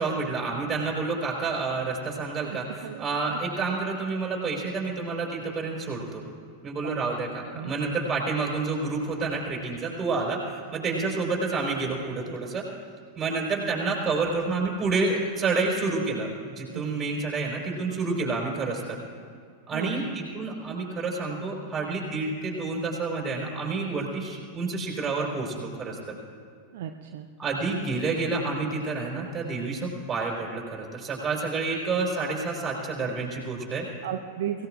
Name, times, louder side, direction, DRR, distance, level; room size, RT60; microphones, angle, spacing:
voice 1, 0.0-6.2 6.6-10.4 10.7-12.7 13.1-19.0 19.7-26.2 27.4-33.9, right 3 dB, 20° right, -3 dB, 4.4 m, -29 dB
voice 2, 2.5-3.0 3.3-3.4 6.8-7.2 7.5-7.7 15.6-15.7 16.7-16.8 19.7-20.0 26.7-27.3 34.0-34.7, right 10 dB, 55° right, 5 dB, 0.6 m, -35 dB
24.0 x 17.0 x 2.5 m, 2.3 s
figure-of-eight pair, 90°, 0 cm